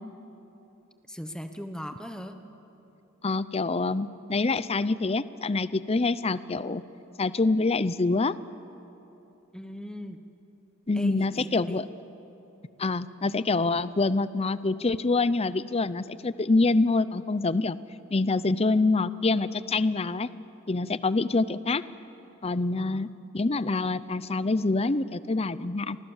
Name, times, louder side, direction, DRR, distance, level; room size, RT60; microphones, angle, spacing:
voice 1, 1.1-2.4 9.5-10.2 10.9-11.8 22.8-23.1, equal, 5° left, 7 dB, 1.1 m, -39 dB
voice 2, 3.2-6.8 7.2-8.3 10.9-11.9 12.8-17.8 18.1-20.3 20.7-21.8 22.4-23.1 23.3-26.0, left 3 dB, 30° left, 16 dB, 0.6 m, -26 dB
30.0 x 24.0 x 7.3 m, 3.0 s
head